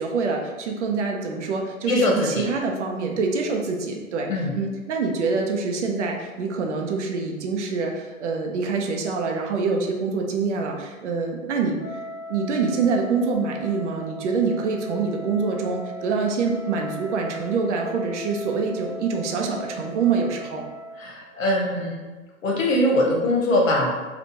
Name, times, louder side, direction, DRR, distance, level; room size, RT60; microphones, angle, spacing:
voice 1, 0.0-11.8 12.3-20.7, right 4 dB, 60° right, 1 dB, 0.6 m, -25 dB
voice 2, 1.9-2.5 4.3-4.5 21.0-22.1 22.4-24.0, left 1 dB, 70° left, -1 dB, 1.0 m, -22 dB
Wind instrument woodwind instrument, 11.7-21.1, equal, 5° left, 1.0 m, -38 dB
3.5 x 2.4 x 2.6 m, 1.3 s
figure-of-eight pair, 115°, 41 cm